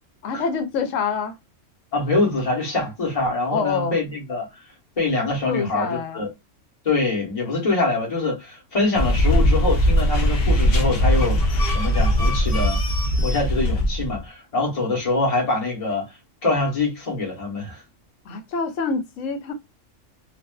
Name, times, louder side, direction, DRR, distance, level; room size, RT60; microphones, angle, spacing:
voice 1, 0.2-1.4 3.5-4.0 5.5-6.2 18.3-19.5, left 5 dB, 75° left, 1.0 m, -26 dB
voice 2, 1.9-4.5 5.0-6.3 6.8-11.4 11.7-12.8 13.2-16.1 16.4-17.8, left 3 dB, 30° left, 1.0 m, -24 dB
sound 1, 8.9-14.2, equal, 55° left, 0.7 m, -20 dB
2.5 x 2.3 x 2.2 m
omnidirectional pair, 1.4 m